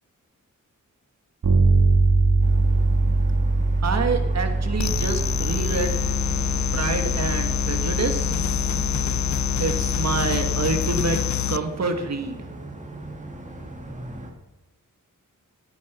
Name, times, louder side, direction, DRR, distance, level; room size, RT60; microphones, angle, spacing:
Bass guitar, 1.4-11.2, right 3 dB, 80° right, 2.9 m, -23 dB
sound 1, 2.4-14.3, right 1 dB, 20° right, 2.1 m, -38 dB
voice 1, 3.8-6.0 6.7-8.3 9.6-12.4, right 4 dB, 55° right, 5 dB, 1.6 m, -27 dB
sound 2, 4.8-11.6, left 11 dB, 60° left, 0.5 m, -26 dB
15.5 x 9.6 x 6.9 m, 1.1 s
wide cardioid pair, 145°, 33 cm